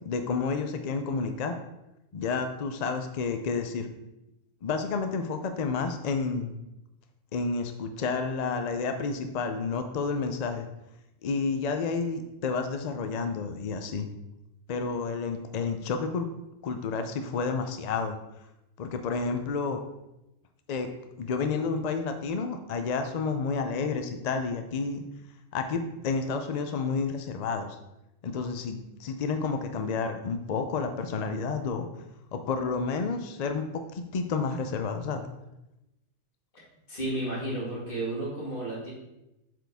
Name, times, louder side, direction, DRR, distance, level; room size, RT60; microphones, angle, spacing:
voice 1, 0.1-1.6 2.1-3.9 4.6-6.6 7.3-10.7 11.2-14.1 14.7-16.3 16.6-18.2 18.8-19.8 20.7-20.9 21.2-25.0 25.5-27.8 28.2-31.9 32.3-35.2, left 4 dB, 65° left, 6 dB, 0.4 m, -30 dB
voice 2, 36.9-38.9, right 1 dB, 40° left, -7 dB, 2.8 m, -32 dB
7.6 x 4.8 x 3.5 m, 0.91 s
omnidirectional pair, 1.4 m